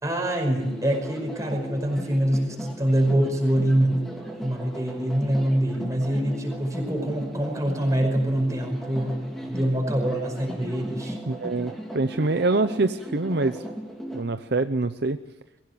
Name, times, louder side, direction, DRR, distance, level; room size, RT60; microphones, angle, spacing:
voice 1, 0.0-4.0 4.4-9.2 9.5-11.2, right 1 dB, 15° right, 3 dB, 5.4 m, -25 dB
sound 1, 0.6-14.2, equal, ahead, 3.3 m, -37 dB
voice 2, 11.3-13.6 14.1-15.2, right 3 dB, 55° right, 10 dB, 0.7 m, -25 dB
23.0 x 16.5 x 9.9 m, 0.99 s
head